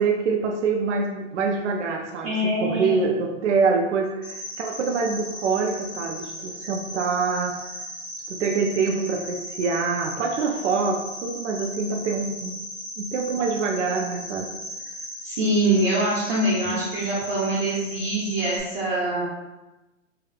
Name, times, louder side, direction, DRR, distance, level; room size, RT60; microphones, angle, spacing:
voice 1, 0.0-7.6 8.3-12.5 13.0-14.5 16.7-16.8, right 4 dB, 65° right, 2 dB, 0.5 m, -25 dB
voice 2, 2.2-3.1 15.2-19.2, right 1 dB, 50° right, -8 dB, 0.9 m, -24 dB
Cricket, 4.2-18.6, equal, 20° left, 0.5 m, -37 dB
3.3 x 2.3 x 2.2 m, 1.0 s
hypercardioid pair, 140°, 37 cm